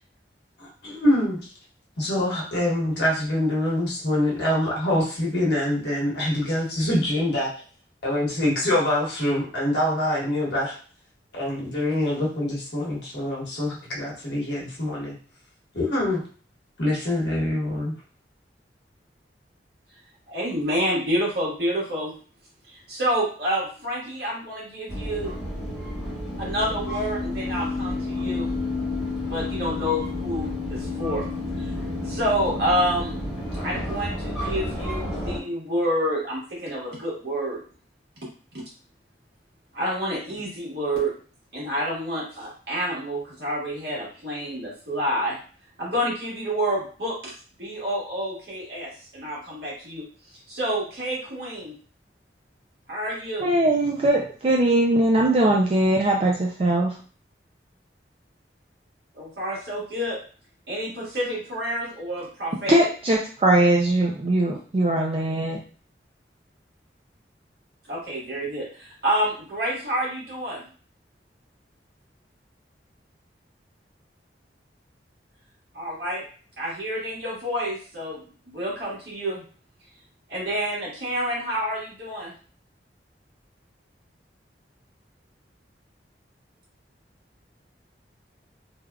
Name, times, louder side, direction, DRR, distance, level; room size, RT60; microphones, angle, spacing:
voice 1, 0.6-1.4 2.0-7.5 8.0-10.7 11.3-15.2 15.7-16.2 16.8-17.9, left 1 dB, 70° left, -4 dB, 1.2 m, -25 dB
voice 2, 20.3-22.1 22.7-25.4 26.4-28.5 29.2-31.3 31.6-31.7 32.0-33.2 33.6-37.6 38.5-38.6 39.7-41.1 41.5-45.4 45.8-47.3 47.6-50.0 50.5-51.7 52.9-53.5 59.1-60.2 60.7-62.8 67.9-70.6 75.7-76.2 76.6-79.4 80.3-82.3, equal, 70° right, -6 dB, 1.4 m, -28 dB
sound 1, 24.9-35.4, left 2 dB, 5° right, 1.2 m, -30 dB
voice 3, 53.4-56.9 62.7-65.6, right 1 dB, 35° right, -1 dB, 0.3 m, -21 dB
3.3 x 2.3 x 2.3 m, 0.41 s
head